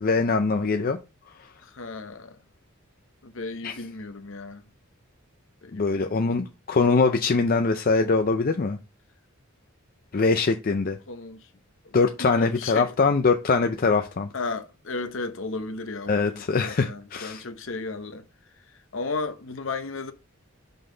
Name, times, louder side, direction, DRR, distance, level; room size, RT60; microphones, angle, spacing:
voice 1, 0.0-1.0 3.6-3.7 5.7-8.8 10.1-11.0 11.9-14.3 16.1-17.4, left 4 dB, 45° left, 0.4 m, -23 dB
voice 2, 1.7-2.4 3.2-4.6 5.6-6.1 11.1-11.4 11.8-12.9 14.3-18.2 18.9-20.1, left 3 dB, 60° left, 0.9 m, -34 dB
5.6 x 5.4 x 3.8 m
head